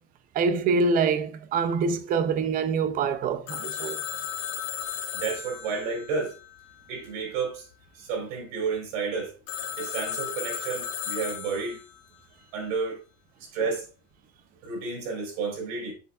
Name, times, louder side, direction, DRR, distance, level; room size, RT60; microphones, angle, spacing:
voice 1, 0.3-4.0, right 4 dB, 25° right, 0.5 m, -25 dB
Telephone, 3.5-7.1 9.5-12.0, left 9 dB, 70° left, 1.7 m, -35 dB
voice 2, 5.1-6.3 6.9-7.7 8.0-9.3 9.8-11.8 12.5-13.0 13.4-13.9 14.6-15.9, right 5 dB, 85° right, 4.0 m, -31 dB
10.0 x 6.9 x 2.3 m
cardioid pair, 175°, 39 cm